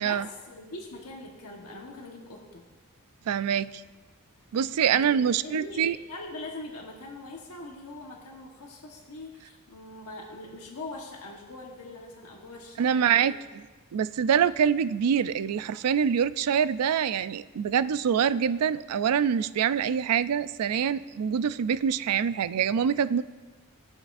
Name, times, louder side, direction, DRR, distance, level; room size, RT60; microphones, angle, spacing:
voice 1, 0.0-2.6 4.9-13.2, left 2 dB, 80° left, 0 dB, 1.3 m, -42 dB
voice 2, 3.3-3.8 4.5-6.0 12.8-13.3 13.9-23.2, right 8 dB, 85° right, 15 dB, 0.4 m, -25 dB
20.0 x 7.3 x 2.6 m, 1.3 s
head